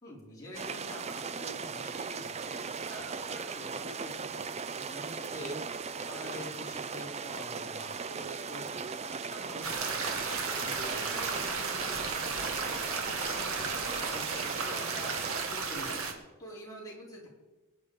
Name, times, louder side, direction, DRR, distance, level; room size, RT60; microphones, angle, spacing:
voice 1, 0.0-5.6 6.1-9.7 10.6-15.2 15.5-16.0 16.4-17.3, equal, 15° left, -5 dB, 4.7 m, -46 dB
sound 1, 0.5-15.5, right 5 dB, 30° right, 0.5 m, -38 dB
sound 2, 9.6-16.1, right 4 dB, 75° right, 2.0 m, -34 dB
23.0 x 9.7 x 5.2 m, 1.2 s
head